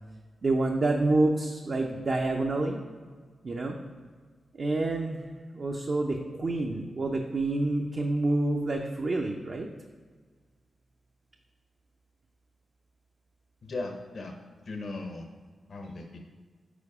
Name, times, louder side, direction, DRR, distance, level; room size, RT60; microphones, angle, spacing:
voice 1, 0.4-2.8 3.4-3.8 4.5-5.2 5.5-9.7, right 2 dB, 55° right, 0 dB, 0.5 m, -28 dB
voice 2, 13.6-14.3 14.7-15.2 15.7-16.2, left 2 dB, 65° left, 3 dB, 0.7 m, -37 dB
5.0 x 4.6 x 4.8 m, 1.5 s
cardioid pair, 55°, 0 cm